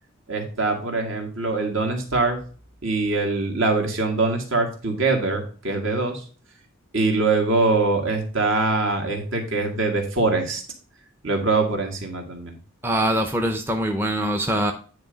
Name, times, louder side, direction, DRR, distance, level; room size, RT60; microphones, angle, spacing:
voice 1, 0.3-2.4 2.8-6.2 6.9-10.6 11.2-12.5, right 3 dB, 65° right, 3 dB, 1.8 m, -23 dB
voice 2, 12.8-14.7, right 1 dB, 10° right, 4 dB, 0.5 m, -23 dB
9.6 x 3.2 x 5.0 m, 0.39 s
head